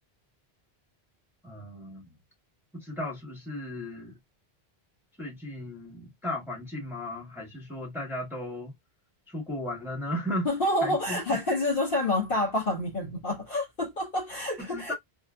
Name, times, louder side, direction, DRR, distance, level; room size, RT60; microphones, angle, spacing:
voice 1, 1.4-2.1 2.7-4.2 5.2-8.7 9.3-10.5 10.8-11.4 14.7-14.9, left 1 dB, ahead, 1.1 m, -35 dB
voice 2, 10.4-14.9, left 1 dB, 55° left, 1.5 m, -28 dB
3.7 x 2.1 x 2.3 m
omnidirectional pair, 1.1 m